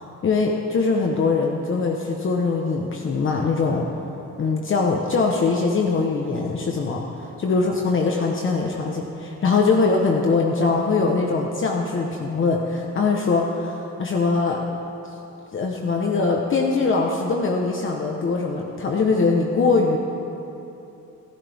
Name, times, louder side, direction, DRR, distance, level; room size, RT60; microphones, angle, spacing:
voice 1, 0.0-3.9 4.4-14.6 15.5-20.0, left 4 dB, 40° left, 0 dB, 1.2 m, -22 dB
29.5 x 11.0 x 3.6 m, 2.9 s
cardioid pair, 130°, 30 cm